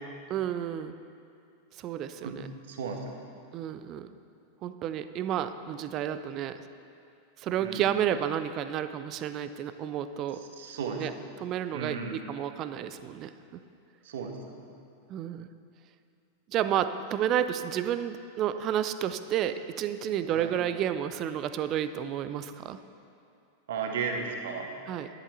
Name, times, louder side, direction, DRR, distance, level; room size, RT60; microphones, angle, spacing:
voice 1, 0.3-1.0 1.8-2.5 3.5-4.1 4.6-6.6 7.4-10.4 11.0-11.1 11.4-13.3 15.1-15.5 16.5-22.8 24.9-25.1, right 10 dB, 35° right, 11 dB, 0.5 m, -31 dB
voice 2, 2.7-3.0 7.6-7.8 10.6-11.1 11.7-12.1 14.0-14.3 20.4-20.5 23.7-24.7, right 5 dB, 60° right, 3 dB, 1.3 m, -34 dB
11.0 x 10.5 x 4.2 m, 2.5 s
figure-of-eight pair, 90°, 0 cm